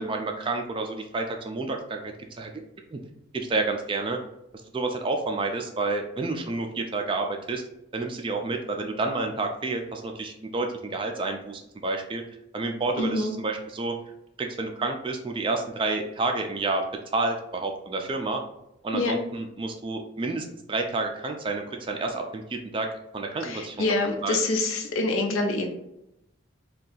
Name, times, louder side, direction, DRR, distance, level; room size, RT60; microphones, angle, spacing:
voice 1, 0.0-2.5 2.9-3.0 3.3-4.2 4.7-7.6 7.9-12.2 12.5-13.9 14.4-16.8 17.1-18.4 18.8-22.9 23.1-23.9 24.2-24.4, right 3 dB, 25° right, 4 dB, 0.3 m, -29 dB
voice 2, 13.0-13.3 18.9-19.2 23.4-25.7, left 2 dB, 80° left, 2 dB, 0.6 m, -26 dB
2.7 x 2.3 x 3.9 m, 0.83 s
head